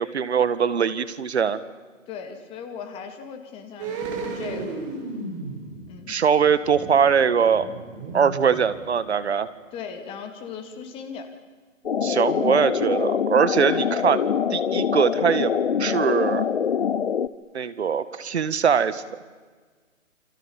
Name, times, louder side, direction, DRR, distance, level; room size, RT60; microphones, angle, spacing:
voice 1, 0.0-1.6 6.1-7.7 8.1-9.5 12.0-14.2 14.5-16.4 17.5-19.0, right 7 dB, 55° right, 14 dB, 1.9 m, -22 dB
voice 2, 2.1-4.8 5.9-6.2 9.7-11.3, left 6 dB, 15° left, 6 dB, 2.3 m, -38 dB
sound 1, 3.8-9.2 9.5-9.6, right 3 dB, 25° right, 4.8 m, -35 dB
sound 2, 11.8-17.3, left 7 dB, 50° left, 1.0 m, -24 dB
29.0 x 25.0 x 7.2 m, 1.4 s
figure-of-eight pair, 150°, 40 cm